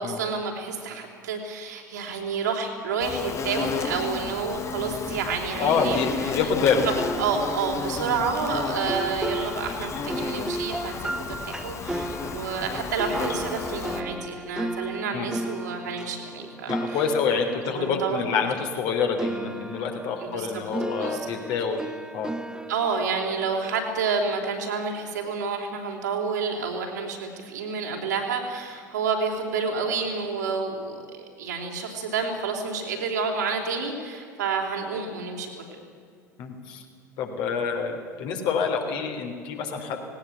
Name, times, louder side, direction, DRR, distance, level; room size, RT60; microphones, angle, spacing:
voice 1, 0.0-6.4 6.9-11.1 11.5-17.0 17.8-18.4 20.2-20.5 21.0-21.3 22.7-31.0 31.4-35.7, right 5 dB, 70° right, 1 dB, 3.7 m, -29 dB
Insect, 3.0-14.0, left 5 dB, 30° left, 1.5 m, -33 dB
voice 2, 5.6-6.8 15.1-15.3 16.7-21.8 22.1-22.3 36.4-36.8 37.2-40.0, left 5 dB, 50° left, 3 dB, 3.3 m, -27 dB
sound 1, 6.9-18.9 19.2-24.4, right 1 dB, 5° right, 1.0 m, -35 dB
18.5 x 18.5 x 8.1 m, 2.3 s
figure-of-eight pair, 70°, 10 cm